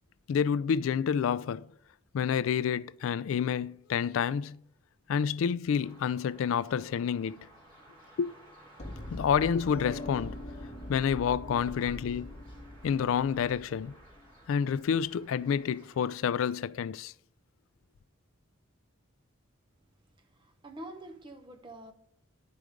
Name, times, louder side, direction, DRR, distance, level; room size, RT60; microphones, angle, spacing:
voice 1, 0.3-1.7 2.1-4.6 5.1-7.5 8.2-8.3 9.1-10.4 10.9-12.3 12.8-14.0 14.5-17.1, left 7 dB, 70° left, 0.3 m, -29 dB
sound 1, 5.8-16.3, right 1 dB, 40° right, 3.3 m, -57 dB
sound 2, 8.8-14.8, left 1 dB, 30° left, 1.0 m, -43 dB
voice 2, 20.3-21.9, right 1 dB, 20° right, 0.8 m, -46 dB
10.5 x 4.8 x 5.1 m
head